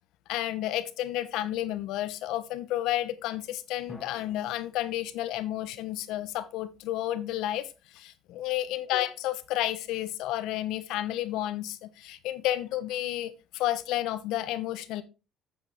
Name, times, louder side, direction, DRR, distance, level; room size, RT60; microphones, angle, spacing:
voice 1, 0.3-15.0, left 14 dB, 80° left, 14 dB, 1.0 m, -31 dB
sound 1, 3.9-6.6, left 1 dB, 10° left, 1.8 m, -53 dB
8.5 x 7.9 x 3.5 m, 0.30 s
cardioid pair, 120°, 0 cm